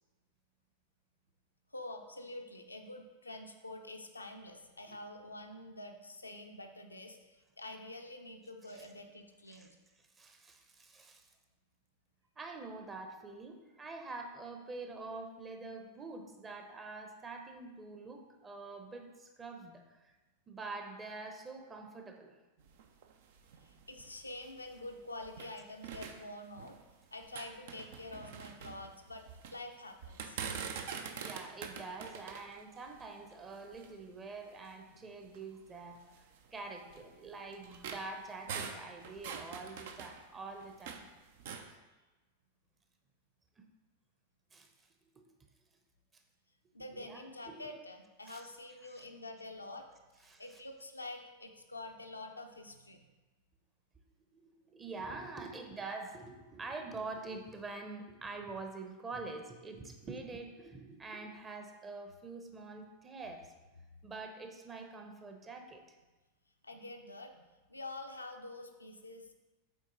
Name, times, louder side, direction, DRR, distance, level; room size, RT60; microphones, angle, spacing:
voice 1, 1.7-9.7 23.6-26.7 27.1-29.2 29.5-30.4 34.9-35.1 46.7-49.9 50.4-53.0 66.6-67.4 67.7-69.3, left 2 dB, 80° left, 3 dB, 0.6 m, -47 dB
voice 2, 10.2-11.3 12.4-20.1 20.5-22.4 31.2-41.1 44.5-44.7 45.1-45.2 47.0-47.6 48.3-48.4 48.9-49.0 50.2-50.4 54.3-63.5 64.0-65.8, right 3 dB, 20° right, 4 dB, 0.9 m, -46 dB
sound 1, 22.6-25.5 25.8-26.9 27.2-29.6 30.0-34.0 34.6-34.7 35.2-35.4 36.1-41.1 41.4-41.7, right 6 dB, 55° right, 0.6 m, -45 dB
7.6 x 4.3 x 3.9 m, 1.2 s
figure-of-eight pair, 90°, 0 cm